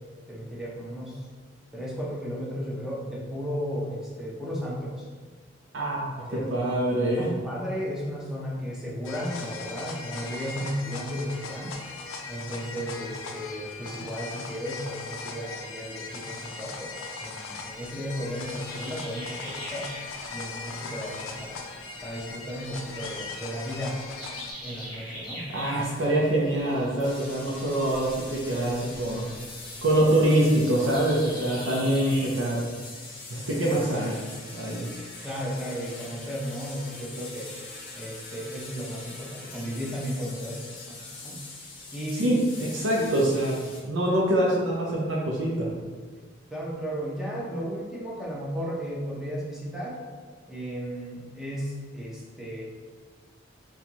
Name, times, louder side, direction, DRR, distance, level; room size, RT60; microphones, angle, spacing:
voice 1, 0.3-1.3 1.7-5.1 6.3-6.4 7.2-11.7 12.3-19.9 20.3-21.6 22.0-24.0 24.6-25.4 35.2-37.5 37.9-41.4 41.9-42.4 42.9-43.1 46.5-50.0 50.5-52.6, equal, 5° right, -6 dB, 0.7 m, -34 dB
voice 2, 5.7-7.3 25.5-29.3 29.8-32.6 33.3-34.2 34.5-34.9 42.1-45.7, right 1 dB, 85° right, -4 dB, 0.6 m, -25 dB
sound 1, 9.0-24.5, left 4 dB, 90° left, 0.4 m, -39 dB
sound 2, 17.7-32.3, equal, 20° left, 1.0 m, -45 dB
sound 3, 27.0-43.8, left 3 dB, 45° left, 0.6 m, -43 dB
4.2 x 2.3 x 2.8 m, 1.5 s
head